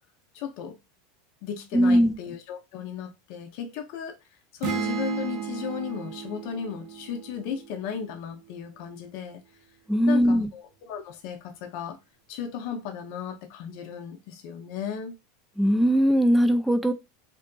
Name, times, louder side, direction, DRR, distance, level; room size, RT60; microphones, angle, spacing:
voice 1, 0.3-0.8 1.4-4.2 4.5-9.4 10.1-12.0 12.3-15.2, left 7 dB, 60° left, 0.5 m, -35 dB
voice 2, 1.7-2.2 9.9-10.5 15.6-16.9, equal, ahead, 0.3 m, -20 dB
sound 1, 4.6-8.3, right 8 dB, 50° right, 0.6 m, -35 dB
2.6 x 2.5 x 2.2 m
supercardioid pair, 115°, 0 cm